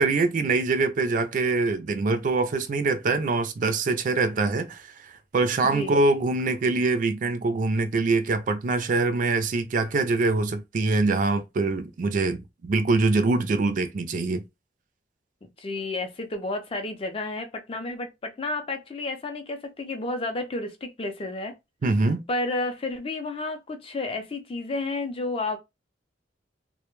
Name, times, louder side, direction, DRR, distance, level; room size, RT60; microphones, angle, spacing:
voice 1, 0.0-14.4 21.8-22.2, right 3 dB, 45° right, 0.3 m, -24 dB
voice 2, 5.6-6.0 15.6-21.5 22.3-25.6, left 2 dB, 30° left, 0.4 m, -31 dB
2.1 x 2.1 x 3.0 m
head